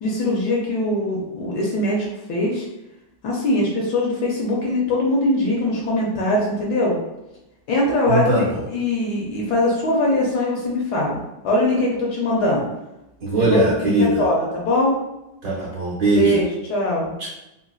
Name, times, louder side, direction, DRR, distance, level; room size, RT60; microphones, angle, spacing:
voice 1, 0.0-2.7 3.2-7.0 7.7-12.7 13.5-15.0 16.2-17.1, left 1 dB, 70° left, -3 dB, 1.1 m, -22 dB
voice 2, 8.1-8.7 13.2-14.2 15.4-16.4 17.2-17.3, right 1 dB, 65° right, -5 dB, 0.9 m, -20 dB
3.8 x 2.1 x 2.3 m, 0.93 s
omnidirectional pair, 2.1 m